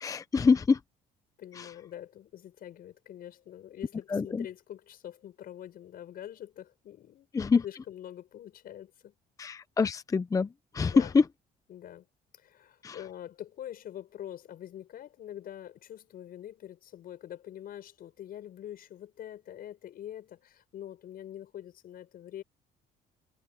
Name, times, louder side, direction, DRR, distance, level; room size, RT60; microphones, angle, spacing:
voice 1, 0.0-0.8 1.6-1.7 4.1-4.4 7.3-7.6 9.4-10.5 10.7-11.2 12.8-13.0, left 5 dB, 20° left, 0.5 m, -25 dB
voice 2, 1.4-7.3 7.6-9.1 10.8-11.1 11.7-12.1 12.3-22.4, left 11 dB, 60° left, 6.1 m, -45 dB
cardioid pair, 110°, 17 cm